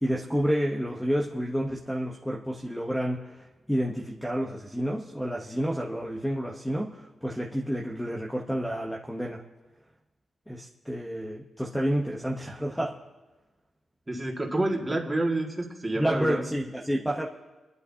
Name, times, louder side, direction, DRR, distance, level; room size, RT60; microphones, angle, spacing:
voice 1, 0.0-9.4 10.5-13.0 15.9-17.3, equal, 5° left, -1 dB, 1.0 m, -30 dB
voice 2, 14.1-16.4, right 2 dB, 15° right, -1 dB, 2.0 m, -28 dB
30.0 x 11.0 x 2.8 m, 1.1 s
wide cardioid pair, 120°, 0 cm